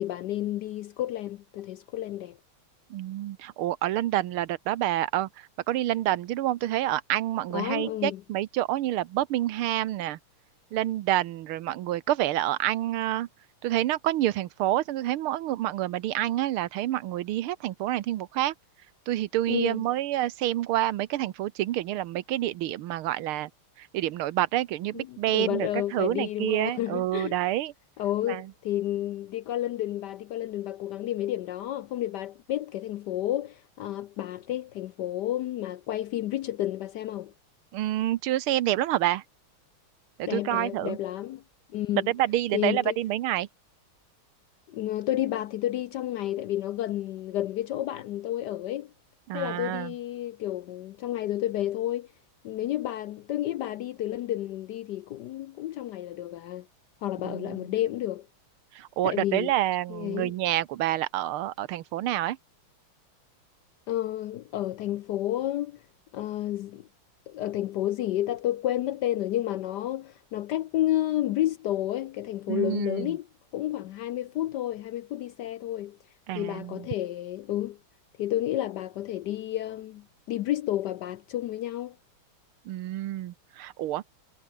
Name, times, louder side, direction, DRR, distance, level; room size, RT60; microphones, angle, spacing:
voice 1, 0.0-2.4 7.5-8.2 19.5-19.8 24.9-27.4 28.0-37.3 40.3-41.4 41.7-42.1 42.5-43.0 44.7-48.9 49.3-52.1 52.4-56.7 57.0-58.3 59.0-59.5 59.9-60.3 63.9-65.8 66.1-66.9 67.3-73.3 73.5-76.0 76.3-77.8 78.2-82.0, left 13 dB, 75° left, 1.0 m, -31 dB
voice 2, 2.9-10.2 10.7-13.3 13.6-18.5 19.1-23.5 23.8-27.7 28.3-28.5 37.7-39.2 40.2-41.0 42.1-43.5 49.3-49.9 57.2-57.7 58.7-62.4 72.5-73.1 76.3-76.9 82.7-84.0, right 14 dB, 85° right, 1.7 m, -28 dB
omnidirectional pair, 2.3 m